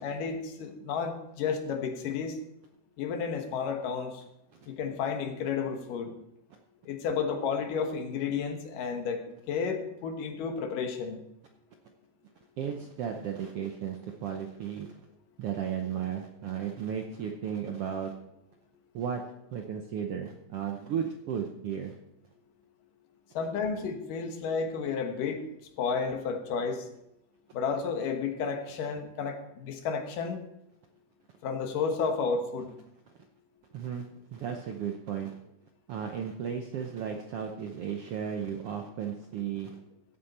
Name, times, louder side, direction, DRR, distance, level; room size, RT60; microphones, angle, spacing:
voice 1, 0.0-2.4 3.0-4.2 4.7-6.1 6.9-11.2 23.3-25.4 25.8-26.9 27.5-30.4 31.4-32.7, left 5 dB, 85° left, 5 dB, 2.9 m, -32 dB
voice 2, 12.6-15.0 15.4-18.1 18.9-19.2 19.5-22.0 33.7-35.3 35.9-39.8, right 8 dB, 75° right, 3 dB, 1.3 m, -34 dB
15.5 x 8.3 x 4.3 m, 0.84 s
omnidirectional pair, 3.7 m